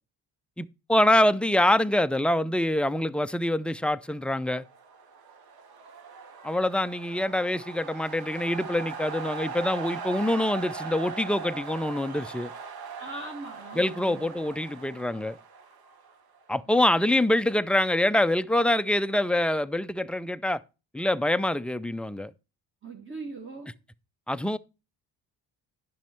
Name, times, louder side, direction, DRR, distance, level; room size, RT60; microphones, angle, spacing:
voice 1, 0.6-4.6 6.4-12.5 13.8-15.4 16.5-20.6 20.9-22.3 24.3-24.6, left 1 dB, 5° left, 0.4 m, -25 dB
sound 1, 4.5-16.4, right 5 dB, 60° right, 1.8 m, -40 dB
voice 2, 13.0-14.3 16.7-16.8 22.8-23.7, right 3 dB, 30° right, 1.7 m, -40 dB
11.0 x 6.0 x 4.3 m
cardioid pair, 95°, 41 cm